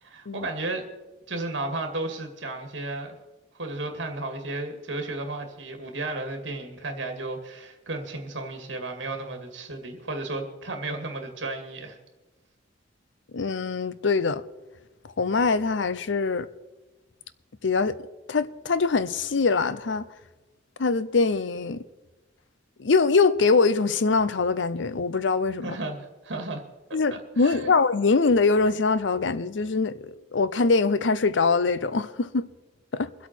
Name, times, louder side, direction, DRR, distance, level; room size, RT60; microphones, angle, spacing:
voice 1, 0.0-0.8 1.3-3.2 3.5-12.0 25.6-26.6 26.9-27.0 27.3-27.7, right 2 dB, 70° right, 2.2 m, -33 dB
voice 2, 13.3-14.4 15.2-16.5 17.6-18.0 18.3-20.0 20.8-21.8 22.8-25.8 26.9-32.5 32.9-33.1, left 4 dB, 70° left, 0.6 m, -23 dB
23.5 x 8.3 x 4.5 m
head